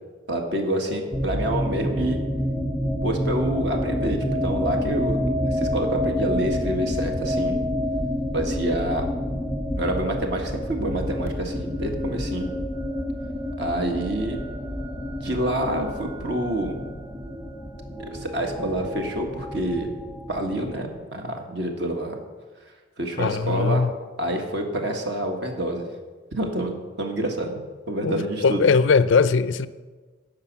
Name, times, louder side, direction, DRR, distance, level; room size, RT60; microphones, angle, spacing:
voice 1, 0.3-2.2 3.0-7.6 8.3-9.1 9.7-12.5 13.6-14.4 15.2-16.8 18.1-19.9 20.3-22.2 23.0-23.8 24.2-25.9 26.3-27.6 27.9-28.6, right 1 dB, 55° right, 1.5 m, -27 dB
sound 1, 1.1-21.0, left 1 dB, 10° right, 1.1 m, -28 dB
voice 2, 23.2-23.9 28.0-29.7, left 5 dB, 70° left, 0.4 m, -20 dB
11.5 x 5.0 x 8.0 m
head